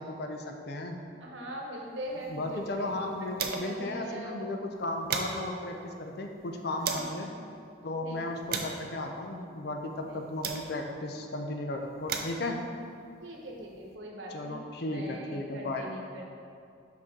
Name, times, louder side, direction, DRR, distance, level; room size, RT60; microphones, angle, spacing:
voice 1, 0.0-1.0 2.3-7.3 7.8-12.6 14.3-15.9, left 2 dB, 55° left, 4 dB, 0.5 m, -35 dB
voice 2, 1.2-3.1 3.4-4.3 6.8-7.4 7.9-8.3 10.1-10.2 13.2-16.3, right 1 dB, 70° right, -1 dB, 1.0 m, -42 dB
sound 1, 2.1-3.9 4.2-4.3 4.7-7.2 7.8-11.0 11.7-13.9, right 5 dB, 50° right, 0.5 m, -39 dB
5.5 x 5.2 x 3.7 m, 2.4 s
head